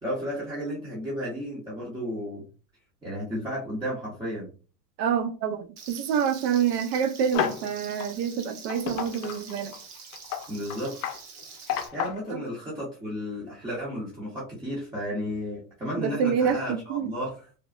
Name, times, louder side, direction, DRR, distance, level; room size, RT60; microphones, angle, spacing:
voice 1, 0.0-2.4 3.0-4.5 10.5-10.9 11.9-17.5, equal, 10° right, 0.6 m, -33 dB
voice 2, 5.0-9.7 12.3-12.4 16.0-17.1, right 7 dB, 80° right, 0.7 m, -27 dB
Frying (food), 5.8-11.9, right 5 dB, 60° right, 1.0 m, -46 dB
sound 1, 7.3-7.7 8.0-8.1 8.7-12.3, left 10 dB, 60° left, 0.5 m, -31 dB
3.3 x 2.0 x 2.4 m
supercardioid pair, 145°, 48 cm